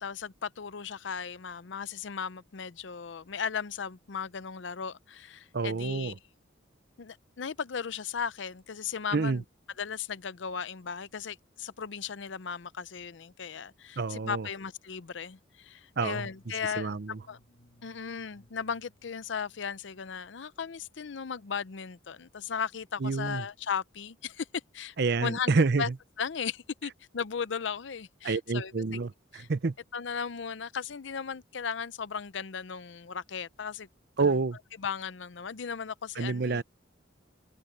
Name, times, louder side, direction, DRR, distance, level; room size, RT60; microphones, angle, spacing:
voice 1, 0.0-6.1 7.0-9.4 9.8-17.0 17.3-17.4 17.8-24.5 24.7-25.0 25.2-25.5 25.8-25.9 26.2-29.0 29.3-29.5 29.9-33.9 34.2-34.4 34.8-36.6, left 6 dB, 65° left, 0.6 m, -36 dB
voice 2, 5.5-6.1 9.1-9.4 14.0-14.5 16.0-16.3 16.8-17.2 23.0-23.4 25.0-25.8 28.2-29.7 34.2-34.6 36.2-36.6, right 4 dB, 55° right, 0.6 m, -28 dB
sound 1, 15.9-20.0, equal, 50° left, 1.9 m, -61 dB
head